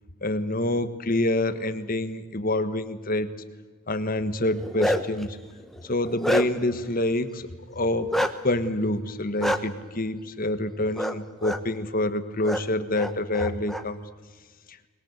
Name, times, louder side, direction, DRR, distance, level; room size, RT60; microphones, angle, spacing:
voice 1, 0.2-3.3 3.9-5.4 5.8-8.1 8.4-14.0, left 1 dB, 40° left, 10 dB, 1.5 m, -27 dB
Bark, 4.4-5.2 5.7-6.7 8.1-8.3 9.4-9.6 11.0-11.1 11.4-11.6 12.4-12.6 13.0-13.8, equal, ahead, 1.1 m, -26 dB
24.0 x 21.0 x 8.1 m, 1.4 s
head